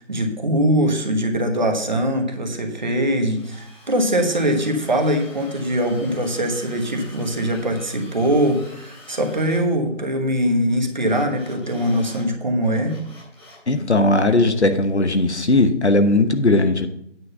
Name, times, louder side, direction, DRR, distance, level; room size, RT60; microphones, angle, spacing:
voice 1, 0.0-13.0, equal, 35° right, 4 dB, 1.3 m, -22 dB
Drill, 3.3-9.6 11.0-12.3 12.6-13.7, left 1 dB, 20° left, 3.0 m, -46 dB
voice 2, 13.7-16.9, left 2 dB, 60° left, 8 dB, 1.1 m, -18 dB
9.3 x 6.2 x 5.6 m, 0.75 s
figure-of-eight pair, 160°, 37 cm